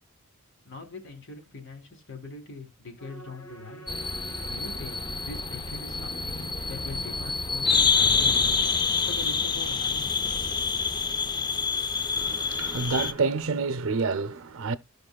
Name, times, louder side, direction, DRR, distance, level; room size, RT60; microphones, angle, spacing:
voice 1, 0.6-3.9 4.5-8.6 9.0-10.1, left 3 dB, 60° left, 3.3 m, -42 dB
sound 1, 3.0-13.4, equal, 75° left, 2.1 m, -48 dB
sound 2, 3.9-13.1, left 5 dB, 20° left, 0.5 m, -27 dB
voice 2, 12.2-14.8, right 4 dB, 65° right, 0.6 m, -28 dB
15.5 x 5.3 x 2.3 m
head